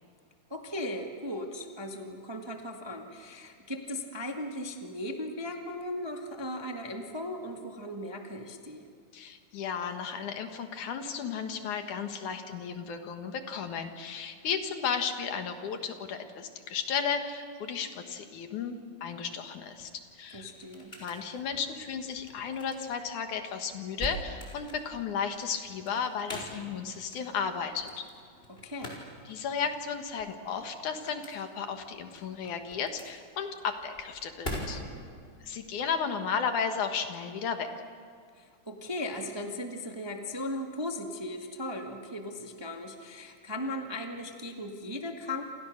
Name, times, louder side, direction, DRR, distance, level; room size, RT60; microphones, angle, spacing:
voice 1, 0.5-8.9 20.3-20.9 28.5-29.0 38.3-45.4, left 1 dB, 15° right, 3 dB, 1.0 m, -37 dB
voice 2, 9.1-20.5 21.0-28.0 29.3-34.8 35.4-37.8, left 6 dB, 75° left, 6 dB, 3.0 m, -34 dB
sound 1, 19.7-35.1, equal, 15° left, 5.1 m, -44 dB
28.5 x 28.0 x 6.6 m, 2.2 s
omnidirectional pair, 3.6 m